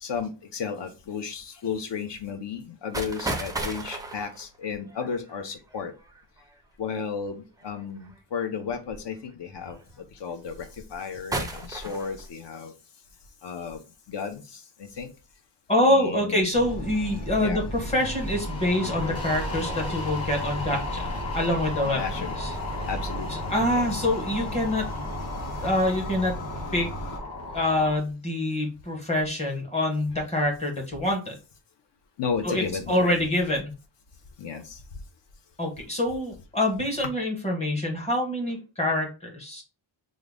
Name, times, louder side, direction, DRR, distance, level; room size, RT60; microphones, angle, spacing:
voice 1, 0.0-5.9 6.8-9.8 10.1-12.7 13.4-13.8 14.1-15.1 15.8-16.4 17.4-17.6 21.9-22.3 22.9-23.9 32.2-33.3 34.4-34.8, left 6 dB, 60° left, 7 dB, 0.7 m, -33 dB
sound 1, 2.9-6.4 7.6-8.1 8.9-9.0 9.5-9.9 10.5-11.0 11.3-12.3, right 2 dB, 10° right, 0.3 m, -34 dB
voice 2, 15.7-22.0 22.4-22.5 23.3-24.9 25.6-26.3 26.7-26.9 27.5-31.4 32.4-33.7 35.6-39.6, left 1 dB, 15° left, 1 dB, 0.9 m, -26 dB
sound 2, 16.5-27.2, equal, 90° left, 0.9 m, -35 dB
sound 3, 17.7-28.0, left 3 dB, 30° left, 1.2 m, -35 dB
3.7 x 2.1 x 3.4 m, 0.30 s
wide cardioid pair, 175°, 47 cm